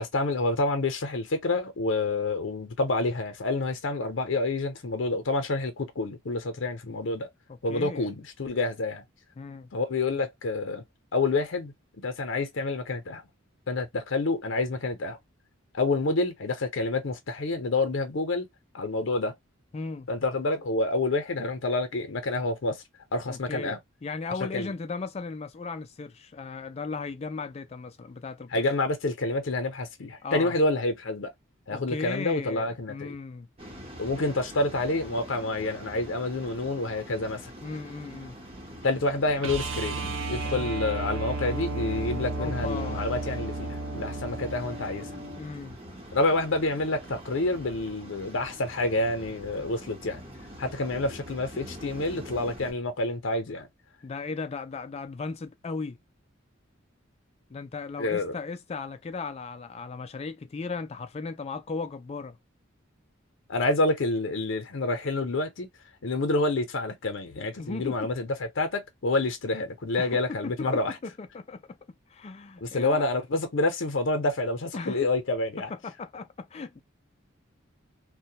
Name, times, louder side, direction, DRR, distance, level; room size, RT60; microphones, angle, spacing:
voice 1, 0.0-7.3 7.6-9.0 9.7-10.8 11.1-13.2 13.7-15.2 15.7-18.5 18.7-19.3 20.1-22.8 23.1-23.8 24.5-24.7 28.5-31.3 31.7-33.2 34.0-37.5 38.8-45.1 46.1-50.2 50.6-53.7 58.0-58.3 63.5-65.7 66.0-71.0 72.6-75.7, left 2 dB, 65° left, 0.6 m, -28 dB
voice 2, 7.5-8.1 9.4-9.7 19.7-20.1 23.3-23.8 24.0-28.6 30.2-30.5 31.7-33.5 37.6-38.4 42.3-43.1 45.4-45.8 54.0-56.0 57.5-62.4 67.6-68.1 70.0-71.6 72.1-73.1 74.7-75.1 75.7-76.8, left 4 dB, 30° left, 0.3 m, -36 dB
Waves surf, 33.6-52.7, equal, 30° right, 0.8 m, -44 dB
sound 1, 39.4-45.4 47.9-48.0, right 3 dB, 75° right, 0.6 m, -33 dB
2.2 x 2.1 x 2.7 m
head